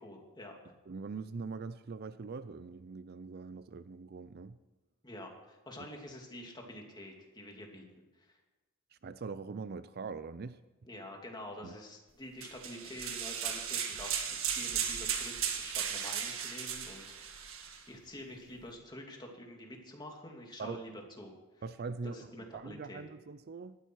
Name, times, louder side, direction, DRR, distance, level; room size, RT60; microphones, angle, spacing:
voice 1, 0.0-0.7 5.0-7.8 8.1-8.4 10.8-17.5 17.9-21.6 22.0-23.0, left 1 dB, 20° left, 1 dB, 2.5 m, -47 dB
voice 2, 0.9-4.6 9.0-10.6 11.6-11.8 20.6-20.8 21.6-23.8, right 4 dB, 45° right, 14 dB, 0.4 m, -42 dB
sound 1, 12.4-17.8, right 8 dB, 60° right, 1.7 m, -36 dB
18.5 x 13.0 x 4.6 m, 1.1 s
head